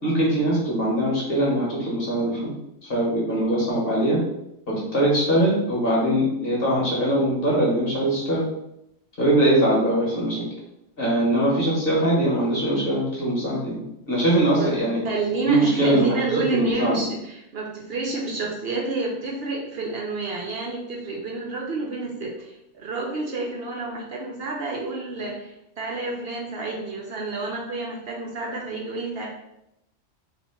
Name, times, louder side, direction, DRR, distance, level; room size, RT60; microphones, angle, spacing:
voice 1, 0.0-2.5 2.8-4.2 4.7-8.4 9.2-10.4 11.0-13.8 14.1-15.0 15.5-17.0, right 1 dB, 50° left, -5 dB, 1.7 m, -22 dB
voice 2, 15.0-29.3, right 3 dB, 60° right, -1 dB, 0.8 m, -29 dB
3.0 x 2.8 x 4.3 m, 0.84 s
omnidirectional pair, 1.3 m